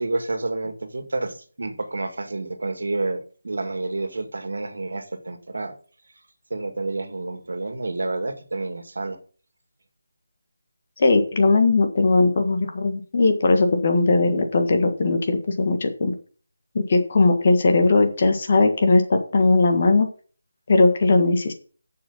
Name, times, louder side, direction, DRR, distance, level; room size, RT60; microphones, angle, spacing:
voice 1, 0.0-5.8 6.5-9.2, right 2 dB, 70° right, 8 dB, 2.1 m, -29 dB
voice 2, 11.0-16.1 16.7-20.1 20.7-21.5, left 3 dB, 35° left, 6 dB, 1.6 m, -19 dB
7.7 x 7.0 x 7.0 m, 0.41 s
figure-of-eight pair, 175°, 0 cm